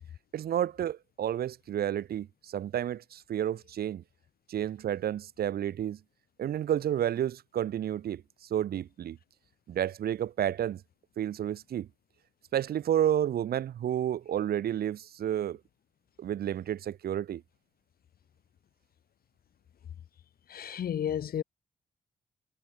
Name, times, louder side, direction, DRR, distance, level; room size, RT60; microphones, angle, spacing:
voice 1, 0.3-4.0 4.5-6.0 6.4-8.2 8.5-9.2 9.7-10.8 11.2-11.9 12.5-15.6 16.2-17.4, right 10 dB, 70° right, 1.1 m, -30 dB
voice 2, 20.5-21.4, left 9 dB, 65° left, 1.4 m, -32 dB
supercardioid pair, 50°, 16 cm